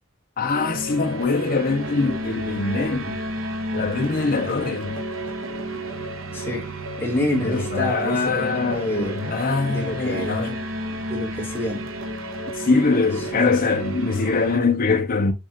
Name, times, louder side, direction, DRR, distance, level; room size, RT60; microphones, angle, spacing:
voice 1, 0.4-3.2 3.7-4.9 7.4-10.5 12.6-15.3, left 4 dB, 40° left, 0.6 m, -23 dB
sound 1, 0.5-14.6, right 1 dB, 65° right, 0.8 m, -32 dB
voice 2, 6.3-6.7 7.0-9.2 9.6-10.4 10.9-11.9 13.2-13.6, left 1 dB, 10° left, 1.4 m, -28 dB
6.9 x 2.4 x 2.9 m
head